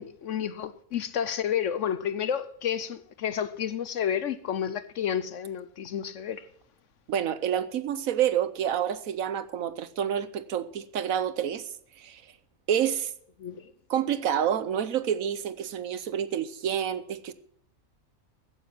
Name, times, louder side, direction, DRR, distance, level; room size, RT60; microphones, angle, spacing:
voice 1, 0.0-6.5 13.4-13.7, left 9 dB, 60° left, 0.9 m, -31 dB
voice 2, 7.1-11.7 12.0-12.2 12.7-13.1 13.9-17.3, right 9 dB, 70° right, 1.2 m, -28 dB
15.0 x 9.5 x 5.9 m
omnidirectional pair, 1.6 m